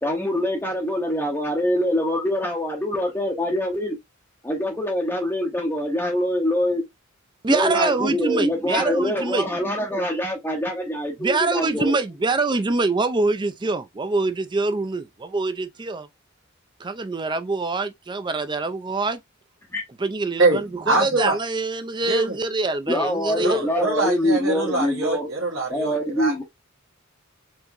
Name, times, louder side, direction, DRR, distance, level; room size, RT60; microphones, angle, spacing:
voice 1, 0.0-4.0 4.4-6.8 7.5-12.0 19.7-19.8 22.9-25.3 25.7-26.4, equal, 10° left, 0.7 m, -24 dB
voice 2, 7.4-9.5 11.2-16.1 16.8-19.2 20.0-23.7, right 3 dB, 20° right, 0.4 m, -25 dB
voice 3, 20.4-21.4 22.1-22.4 23.3-26.3, right 2 dB, 65° right, 1.1 m, -23 dB
4.5 x 2.9 x 2.6 m
head